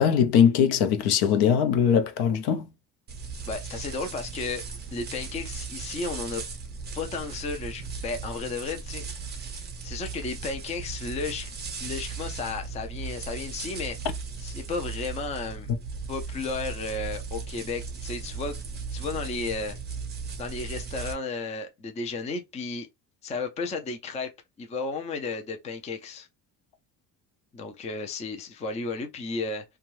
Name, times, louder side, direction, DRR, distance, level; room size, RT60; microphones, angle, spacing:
voice 1, 0.0-2.7, left 8 dB, 70° left, 0.7 m, -21 dB
sound 1, 3.1-21.1, right 5 dB, 25° right, 0.6 m, -37 dB
voice 2, 3.5-4.6 4.9-6.4 6.9-11.5 11.8-14.0 14.4-15.7 16.1-18.6 18.9-19.8 20.4-22.9 23.2-24.3 24.6-26.3 27.5-29.6, left 3 dB, 15° left, 0.4 m, -33 dB
2.5 x 2.3 x 3.1 m
cardioid pair, 140°, 41 cm